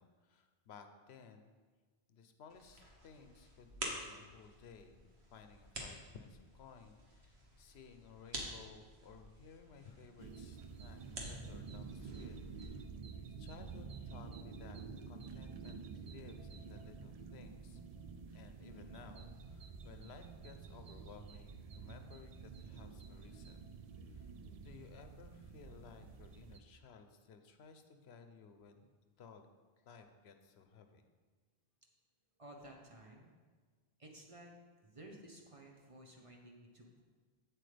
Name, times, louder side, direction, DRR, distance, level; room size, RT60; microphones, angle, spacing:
voice 1, 0.0-1.5 2.1-12.4 12.6-12.9 13.4-14.8 15.1-17.8 18.3-23.6 24.1-24.3 24.6-28.9 29.2-29.5 29.9-31.0, left 5 dB, 85° left, 7 dB, 0.9 m, -57 dB
sound 1, 2.5-12.7, right 1 dB, 80° right, 1.5 m, -50 dB
sound 2, 10.2-26.6, right 5 dB, 55° right, 0.4 m, -50 dB
voice 2, 32.4-33.3 34.0-34.5 34.8-37.0, right 1 dB, 30° right, 0 dB, 1.1 m, -55 dB
8.3 x 7.8 x 3.3 m, 1.4 s
omnidirectional pair, 1.1 m